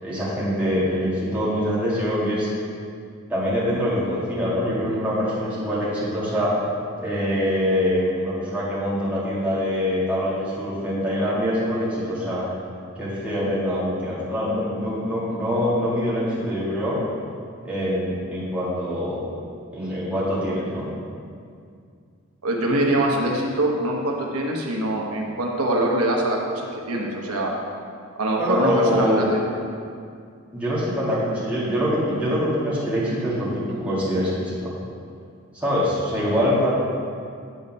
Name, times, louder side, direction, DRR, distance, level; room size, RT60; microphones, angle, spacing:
voice 1, 0.0-2.5 3.3-6.6 7.0-12.4 13.0-17.0 17.6-19.2 19.7-20.9 28.4-29.3 30.5-34.7 35.5-36.7, equal, 5° right, -9 dB, 1.9 m, -24 dB
voice 2, 22.4-27.5 28.2-29.2, right 1 dB, 85° right, -1 dB, 1.0 m, -23 dB
9.1 x 4.1 x 5.4 m, 2.3 s
head